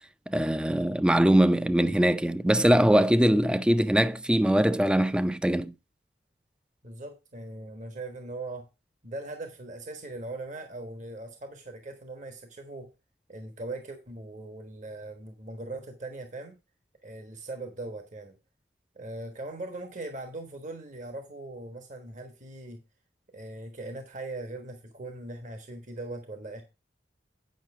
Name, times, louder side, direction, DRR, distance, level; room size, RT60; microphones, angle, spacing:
voice 1, 0.3-5.7, right 1 dB, 5° right, 0.4 m, -22 dB
voice 2, 6.8-8.7 9.0-12.9 13.3-16.5 17.0-18.4 18.9-22.8 23.3-26.6, right 2 dB, 45° right, 1.2 m, -40 dB
9.2 x 5.8 x 4.7 m
head